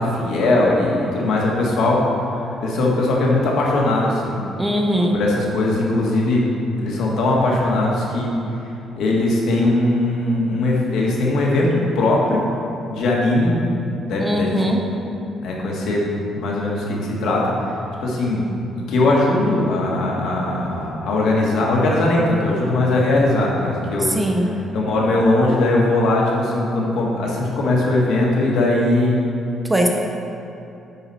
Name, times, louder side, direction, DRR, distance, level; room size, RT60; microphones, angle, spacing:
voice 1, 0.0-2.0 2.6-4.4 5.0-6.4 6.8-8.3 9.0-12.5 12.9-13.5 14.1-14.6 15.4-16.0 16.3-17.5 18.0-18.4 18.7-24.1 24.7-29.2, left 2 dB, 65° left, -3 dB, 1.6 m, -19 dB
voice 2, 4.6-5.2 14.2-14.8 24.0-24.6 29.7-29.9, equal, 10° right, 1 dB, 0.5 m, -20 dB
9.8 x 4.9 x 4.2 m, 2.8 s
cardioid pair, 160°, 0 cm